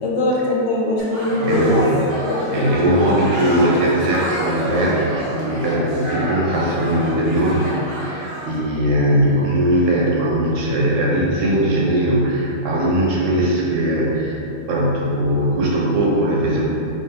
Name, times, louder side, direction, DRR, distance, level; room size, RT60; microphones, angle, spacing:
voice 1, 0.0-1.9 2.3-2.4, left 1 dB, 80° left, -3 dB, 1.0 m, -21 dB
sound 1, 1.0-8.5, right 1 dB, 50° right, 0.9 m, -27 dB
voice 2, 1.4-2.0 2.5-14.4 14.7-16.7, right 1 dB, 90° right, -4 dB, 1.1 m, -19 dB
3.6 x 3.1 x 2.7 m, 2.9 s
omnidirectional pair, 1.3 m